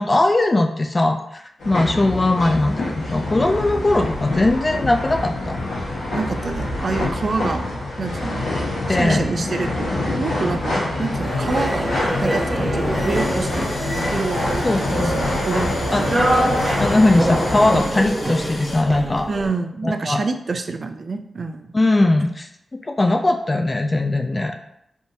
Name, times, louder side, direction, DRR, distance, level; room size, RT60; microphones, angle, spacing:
voice 1, 0.0-5.6 8.9-9.2 14.6-15.2 15.9-16.1 16.8-19.3 19.8-20.2 21.7-22.5 22.9-24.7, left 2 dB, 35° left, 4 dB, 0.3 m, -19 dB
sound 1, 1.6-17.8, left 2 dB, 85° left, 1.2 m, -26 dB
voice 2, 6.1-8.4 8.9-11.9 12.2-13.7 14.1-14.6 14.9-16.1 19.3-21.7, right 4 dB, 55° right, 7 dB, 0.3 m, -27 dB
sound 2, 11.2-19.5, right 1 dB, 25° right, 1.4 m, -25 dB
sound 3, 13.1-18.8, left 2 dB, 60° left, 1.0 m, -37 dB
3.5 x 2.6 x 2.6 m, 0.77 s
cardioid pair, 50°, 0 cm